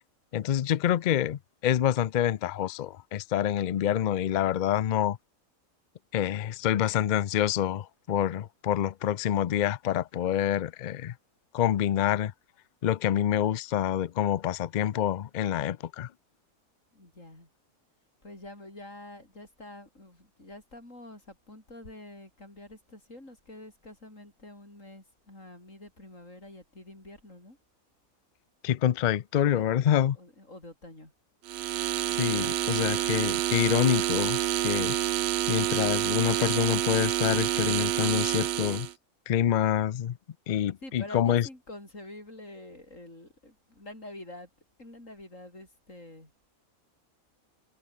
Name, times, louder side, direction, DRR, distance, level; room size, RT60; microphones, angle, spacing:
voice 1, 0.3-5.2 6.1-11.1 11.5-12.3 12.8-16.1 28.6-30.2 32.1-34.4 34.6-35.0 35.5-38.9 39.3-40.2 40.5-41.5, left 10 dB, 90° left, 0.4 m, -27 dB
voice 2, 16.9-17.5 18.2-27.6 29.4-31.1 32.1-33.2 40.8-44.5 44.8-46.3, left 1 dB, 65° left, 8.5 m, -47 dB
sound 1, 31.5-38.9, right 13 dB, 65° right, 0.7 m, -28 dB
omnidirectional pair, 1.5 m